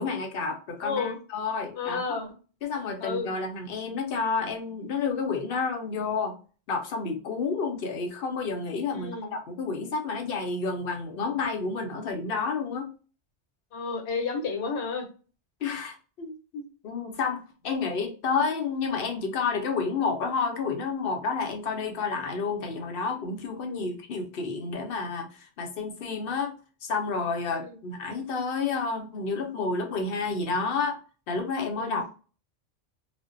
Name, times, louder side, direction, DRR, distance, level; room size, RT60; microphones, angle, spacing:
voice 1, 0.0-2.2 2.6-6.3 6.7-12.9 15.6-16.0 16.8-26.5 26.8-31.0 31.3-32.1, left 4 dB, 65° left, 4 dB, 0.7 m, -30 dB
voice 2, 0.8-1.2 1.8-2.3 3.0-3.3 8.9-9.3 13.7-15.1 16.2-16.6 23.6-23.9 27.6-27.8 31.8-32.0, left 4 dB, 85° left, 4 dB, 1.0 m, -32 dB
2.5 x 2.1 x 2.4 m, 0.36 s
omnidirectional pair, 1.1 m